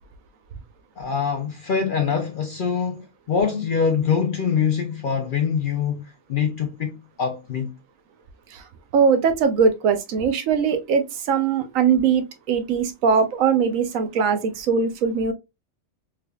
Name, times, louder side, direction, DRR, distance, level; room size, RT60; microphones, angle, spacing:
voice 1, 1.0-7.7, left 6 dB, 60° left, 0.5 m, -24 dB
voice 2, 8.9-15.3, right 6 dB, 85° right, 1.1 m, -21 dB
3.4 x 3.3 x 2.2 m
omnidirectional pair, 1.4 m